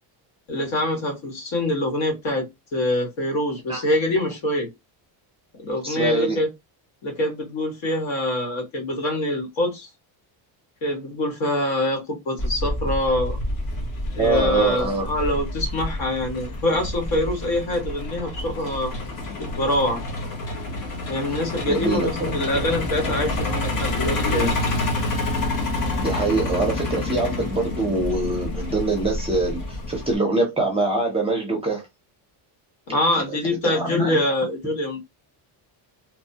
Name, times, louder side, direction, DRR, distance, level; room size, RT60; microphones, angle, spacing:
voice 1, 0.5-4.7 5.5-6.5 7.0-9.9 10.8-13.4 14.1-18.9 19.4-20.0 21.1-24.5 32.9-35.0, left 1 dB, 65° left, 1.6 m, -25 dB
voice 2, 5.8-6.4 14.2-15.1 21.7-22.4 26.0-29.6 29.9-31.9 33.6-34.2, right 2 dB, 15° right, 0.5 m, -24 dB
Truck, 12.4-30.2, left 2 dB, 45° left, 1.1 m, -28 dB
3.1 x 2.1 x 2.7 m
cardioid pair, 160°, 49 cm